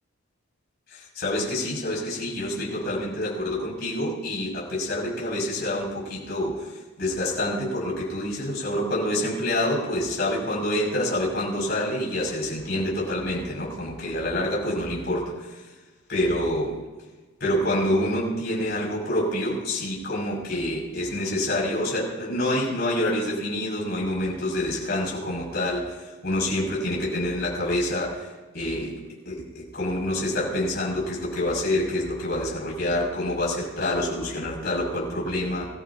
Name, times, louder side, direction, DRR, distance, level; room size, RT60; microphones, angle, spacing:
voice 1, 0.9-15.6 16.1-16.8 17.4-28.3 28.5-28.9 29.2-35.7, left 1 dB, 45° left, -4 dB, 6.4 m, -27 dB
25.0 x 14.5 x 2.8 m, 1.3 s
head